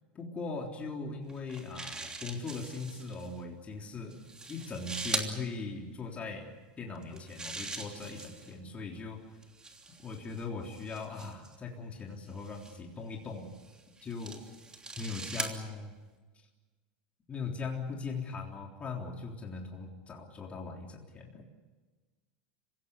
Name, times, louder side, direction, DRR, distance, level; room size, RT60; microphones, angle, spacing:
voice 1, 0.1-4.2 4.5-6.5 6.8-9.2 10.0-13.5 14.0-14.4 15.0-15.9 17.3-21.4, left 4 dB, 25° left, 1 dB, 3.6 m, -40 dB
sound 1, 1.3-3.3 4.1-5.3 6.9-8.6 9.4-11.6 12.4-12.8 13.5-15.6, right 3 dB, 15° right, 3.0 m, -41 dB
26.0 x 16.5 x 9.9 m, 1.3 s
hypercardioid pair, 100°, 5 cm